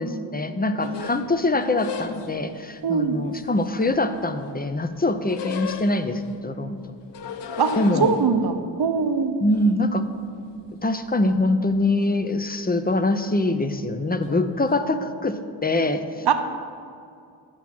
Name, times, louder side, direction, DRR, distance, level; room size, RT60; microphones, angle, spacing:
voice 1, 0.0-6.9 7.8-8.1 9.4-10.1 10.8-16.3, left 2 dB, 20° left, 9 dB, 0.6 m, -24 dB
sound 1, 0.8-2.5 3.2-4.5 4.8-6.3 7.0-10.7 11.1-11.8 12.0-12.6 12.9-13.2 14.2-14.7, left 8 dB, 60° left, 0.7 m, -36 dB
voice 2, 2.8-3.2 7.6-7.7 8.0-9.4 16.2-16.3, right 6 dB, 50° right, 8 dB, 0.9 m, -21 dB
9.1 x 5.8 x 6.0 m, 2.4 s
supercardioid pair, 45°, 48 cm